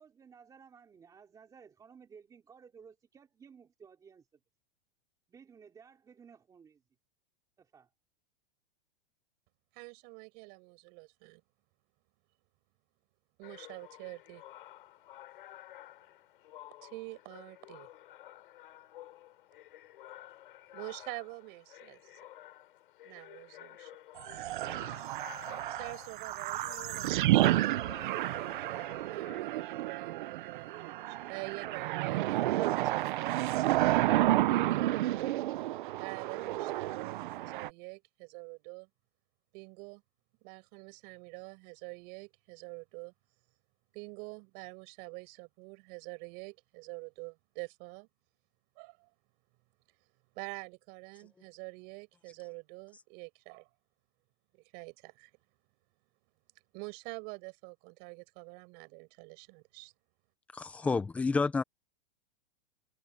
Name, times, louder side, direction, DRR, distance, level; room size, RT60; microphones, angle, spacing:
voice 1, 0.0-4.4 5.3-6.8 7.6-7.9, right 6 dB, 10° right, 3.2 m, -56 dB
voice 2, 9.7-11.4 13.4-14.4 16.8-17.9 20.7-22.2 23.0-23.9 25.7-28.3 28.6-34.2 34.5-34.9 36.0-38.9 39.5-40.0 40.4-43.1 43.9-48.1 48.8-49.1 50.4-53.7 54.5-55.3 56.7-59.9, right 32 dB, 35° right, 7.0 m, -46 dB
sound 1, 13.4-29.4, left 14 dB, 60° left, 7.3 m, -52 dB
sound 2, 24.2-37.7, right 15 dB, 55° right, 0.8 m, -31 dB
voice 3, 60.5-61.6, left 4 dB, 5° left, 0.6 m, -29 dB
supercardioid pair, 170°, 30 cm